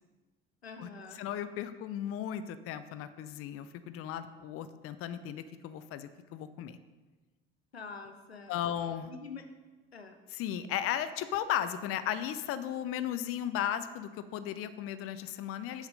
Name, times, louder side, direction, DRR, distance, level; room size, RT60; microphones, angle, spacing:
voice 1, 0.6-1.2 7.7-8.5 9.1-9.5 9.9-10.2, left 4 dB, 90° left, 7 dB, 0.7 m, -45 dB
voice 2, 1.2-6.8 8.5-9.1 10.3-15.9, left 10 dB, 45° left, 12 dB, 0.6 m, -35 dB
7.9 x 5.8 x 5.6 m, 1.2 s
figure-of-eight pair, 60°, 30 cm